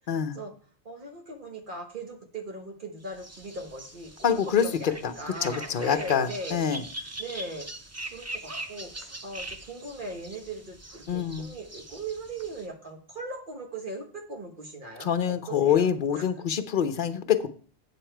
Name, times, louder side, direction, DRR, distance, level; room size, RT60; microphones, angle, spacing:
voice 1, 0.1-0.4 4.2-5.1 5.4-6.8 11.1-11.5 15.0-17.5, left 8 dB, 55° left, 10 dB, 0.8 m, -25 dB
voice 2, 0.8-7.7 8.1-15.9 16.1-16.4, right 2 dB, 50° right, 3 dB, 1.3 m, -39 dB
sound 1, 3.1-12.7, right 1 dB, 20° right, 0.6 m, -42 dB
8.3 x 6.8 x 4.4 m, 0.43 s
omnidirectional pair, 1.1 m